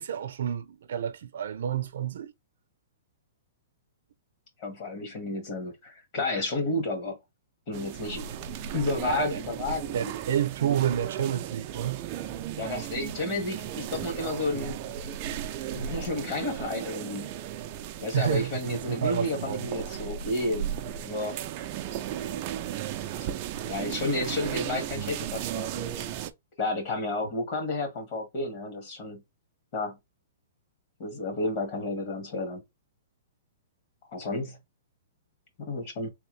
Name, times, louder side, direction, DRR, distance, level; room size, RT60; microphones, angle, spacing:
voice 1, 0.0-2.3 9.1-9.4 9.9-12.0 18.1-19.7, right 10 dB, 65° right, 0.7 m, -29 dB
voice 2, 4.6-7.2 7.7-8.3 8.7-10.1 12.6-14.8 15.7-17.3 18.0-21.4 23.1-23.4 23.6-26.1 26.6-29.2 29.7-30.0 31.0-32.6 34.1-34.6 35.6-36.1, left 2 dB, 35° left, 1.7 m, -31 dB
sound 1, 7.7-26.3, right 10 dB, 35° right, 0.4 m, -35 dB
3.5 x 2.9 x 3.2 m
hypercardioid pair, 165°, 0 cm